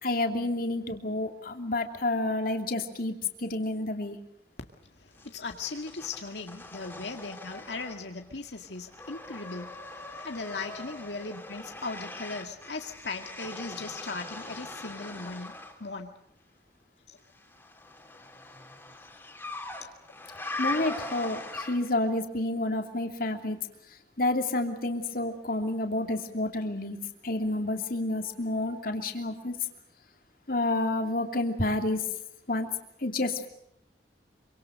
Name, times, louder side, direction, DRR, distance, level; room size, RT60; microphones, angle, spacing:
voice 1, 0.0-3.1 3.4-4.2 20.6-23.6 24.2-27.0 27.2-29.6 30.5-32.0 32.5-32.7 33.0-33.5, left 2 dB, 55° left, 5 dB, 2.9 m, -29 dB
voice 2, 5.0-15.5 15.8-16.1 17.1-17.2, left 3 dB, 80° left, 4 dB, 2.0 m, -38 dB
sound 1, 5.2-8.2 8.5-15.8 17.4-22.1, left 2 dB, 10° left, 3.3 m, -41 dB
26.5 x 25.0 x 6.5 m, 0.76 s
head